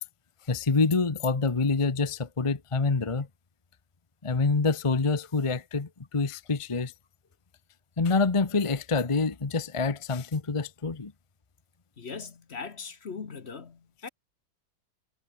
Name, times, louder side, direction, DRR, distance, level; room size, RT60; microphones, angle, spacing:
voice 1, 0.5-3.3 4.2-6.9 8.0-11.1, left 4 dB, 25° left, 1.0 m, -26 dB
voice 2, 12.0-14.1, left 5 dB, 45° left, 1.5 m, -40 dB
omnidirectional pair, 1.6 m